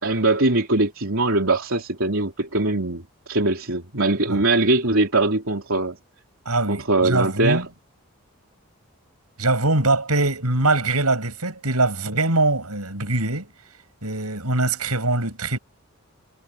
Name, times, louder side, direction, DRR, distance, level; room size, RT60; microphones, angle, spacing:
voice 1, 0.0-6.0 6.7-7.6, right 2 dB, 65° right, 3.6 m, -21 dB
voice 2, 6.5-7.7 9.4-13.5 14.0-15.6, right 2 dB, 85° right, 7.9 m, -22 dB
head